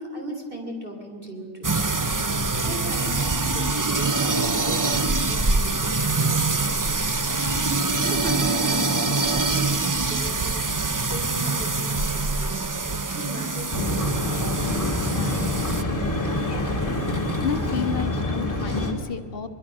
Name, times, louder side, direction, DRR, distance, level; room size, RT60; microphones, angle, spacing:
voice 1, 0.0-1.7 2.5-6.4 7.2-12.6 13.1-14.6, right 1 dB, 40° right, 1 dB, 3.4 m, -37 dB
sound 1, 1.6-15.8, right 3 dB, 25° right, 0.4 m, -24 dB
sound 2, 13.7-18.9, left 1 dB, 15° left, 2.7 m, -26 dB
voice 2, 15.1-15.6 15.8-16.8 17.4-19.5, left 6 dB, 45° left, 8 dB, 1.5 m, -32 dB
23.5 x 23.5 x 6.3 m, 2.1 s
omnidirectional pair, 1.4 m